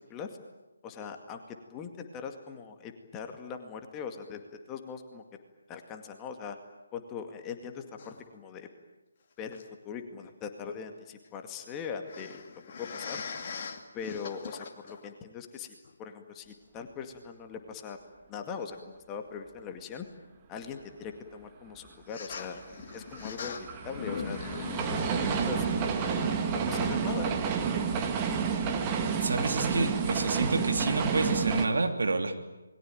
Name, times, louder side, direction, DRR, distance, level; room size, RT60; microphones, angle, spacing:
voice 1, 0.8-5.2 5.7-6.6 6.9-8.7 9.4-12.4 12.8-13.2 13.9-18.0 18.3-20.1 20.5-22.6 22.9-24.4 24.9-25.6 26.0-26.2 26.5-27.3, left 6 dB, 15° left, 5 dB, 2.2 m, -41 dB
sound 1, 8.0-8.2 9.5-9.6 12.0-15.1 15.8-15.9 18.7-18.8 22.1-27.0, left 5 dB, 35° left, 2.5 m, -40 dB
sound 2, 22.3-31.7, right 6 dB, 20° right, 2.0 m, -30 dB
voice 2, 29.2-32.3, right 3 dB, 55° right, 5 dB, 3.1 m, -28 dB
28.0 x 22.0 x 9.1 m, 1.0 s
figure-of-eight pair, 145°, 0 cm